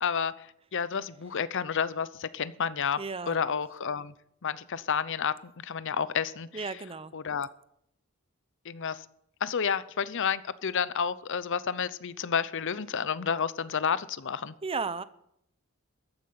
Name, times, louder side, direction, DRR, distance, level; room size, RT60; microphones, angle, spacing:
voice 1, 0.0-3.0 3.3-4.1 4.4-6.8 7.1-7.5 8.6-9.1 9.4-14.5, left 6 dB, 60° left, 16 dB, 0.7 m, -30 dB
voice 2, 3.0-3.4 6.5-7.1 14.6-15.0, right 4 dB, 25° right, 14 dB, 0.7 m, -34 dB
14.0 x 9.5 x 8.6 m, 0.74 s
head